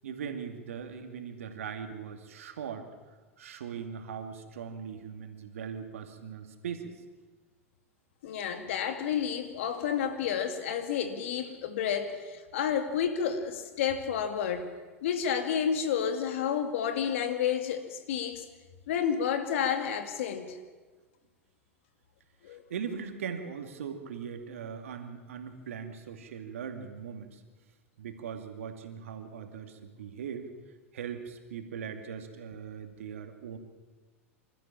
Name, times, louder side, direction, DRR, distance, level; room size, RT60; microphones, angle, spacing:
voice 1, 0.0-2.9 3.4-6.9 22.5-27.4 28.0-30.5 30.9-33.6, right 7 dB, 75° right, 6 dB, 2.4 m, -40 dB
voice 2, 8.2-14.7 15.0-18.4 18.9-20.6 22.4-22.6, left 8 dB, 65° left, 7 dB, 2.4 m, -30 dB
26.5 x 14.0 x 7.4 m, 1.3 s
hypercardioid pair, 100°, 7 cm